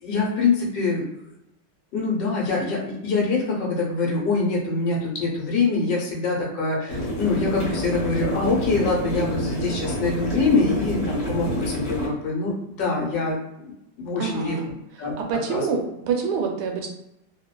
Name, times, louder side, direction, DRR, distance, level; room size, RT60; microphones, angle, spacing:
voice 1, 0.0-1.1 1.9-14.6 15.0-15.1 15.5-15.7, left 3 dB, 80° left, -3 dB, 1.2 m, -24 dB
sound 1, 6.9-12.1, equal, 50° left, 1.2 m, -28 dB
voice 2, 14.2-14.6 15.2-16.9, right 6 dB, 75° right, 2 dB, 1.1 m, -26 dB
2.9 x 2.1 x 2.2 m, 0.85 s
omnidirectional pair, 1.9 m